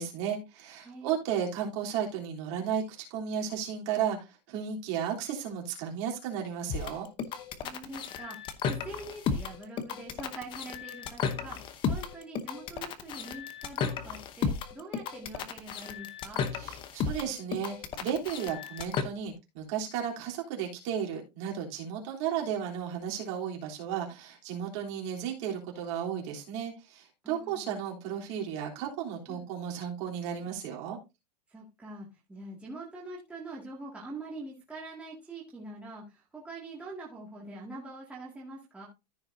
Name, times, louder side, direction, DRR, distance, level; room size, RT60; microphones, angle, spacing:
voice 1, 0.0-7.1 16.5-31.0, right 8 dB, 45° right, -1 dB, 3.4 m, -34 dB
voice 2, 0.8-1.2 7.6-11.6 11.9-16.5 27.2-27.8 29.3-29.5 31.5-38.9, right 2 dB, 5° right, -4 dB, 2.1 m, -44 dB
sound 1, 6.7-19.0, left 6 dB, 25° left, 0.8 m, -34 dB
14.0 x 5.7 x 2.6 m, 0.25 s
supercardioid pair, 165°, 21 cm